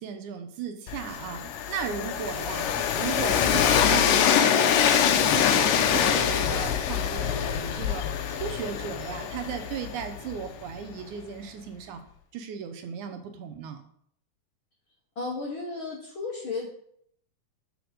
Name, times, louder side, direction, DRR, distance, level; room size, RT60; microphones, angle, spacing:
voice 1, 0.0-12.0 12.3-13.8, right 7 dB, 75° right, 6 dB, 2.0 m, -36 dB
Train, 0.9-10.7, left 8 dB, 90° left, 2.3 m, -24 dB
voice 2, 15.1-16.7, left 3 dB, 55° left, -3 dB, 1.5 m, -33 dB
6.4 x 5.1 x 5.0 m, 0.67 s
omnidirectional pair, 3.7 m